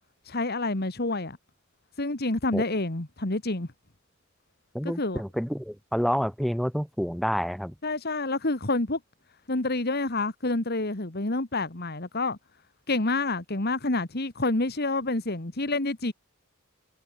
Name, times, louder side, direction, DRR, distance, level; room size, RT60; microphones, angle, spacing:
voice 1, 0.3-1.4 2.0-3.7 4.8-5.2 7.8-9.0 9.5-12.4 12.9-16.1, left 2 dB, 50° left, 1.9 m, -28 dB
voice 2, 4.7-7.7, equal, ahead, 3.0 m, -28 dB
head